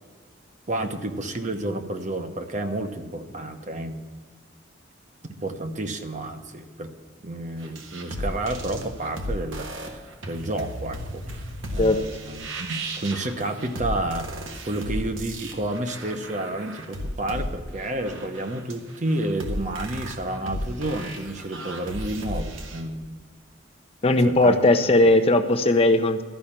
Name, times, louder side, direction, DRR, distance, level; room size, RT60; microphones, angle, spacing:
voice 1, 0.7-4.0 5.4-6.9 7.2-11.4 11.7-23.3 24.2-24.6, right 1 dB, 40° right, 6 dB, 0.9 m, -30 dB
sound 1, 7.6-22.8, equal, 85° right, 1.4 m, -35 dB
voice 2, 24.0-26.2, left 2 dB, 30° left, 6 dB, 0.6 m, -18 dB
12.5 x 5.6 x 8.8 m, 1.6 s
head